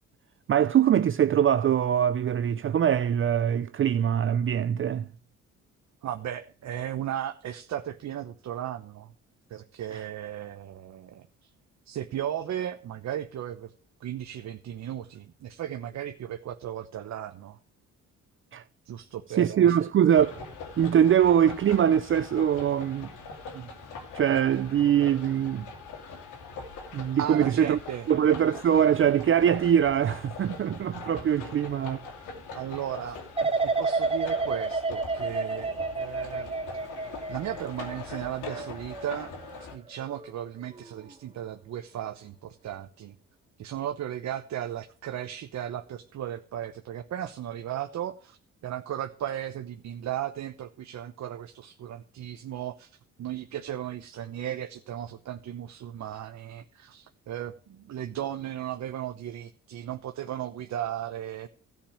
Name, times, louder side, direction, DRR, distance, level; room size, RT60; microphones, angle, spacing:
voice 1, 0.5-5.1 18.5-18.6 19.4-20.4 20.8-23.1 23.5-23.7 24.1-25.7 26.9-27.8 28.1-32.0, right 9 dB, 45° right, 0.5 m, -23 dB
voice 2, 6.0-9.1 9.5-11.5 11.9-13.7 14.0-17.6 18.9-19.8 27.2-28.1 32.5-33.2 33.6-36.5 37.3-39.3 39.7-43.2 43.6-48.4 48.6-61.5, right 11 dB, 65° right, 1.0 m, -36 dB
sound 1, 20.1-39.8, left 4 dB, 85° left, 2.7 m, -43 dB
sound 2, 33.4-40.3 40.7-41.1, right 3 dB, 20° right, 1.2 m, -31 dB
13.5 x 5.4 x 8.7 m
cardioid pair, 90°, 30 cm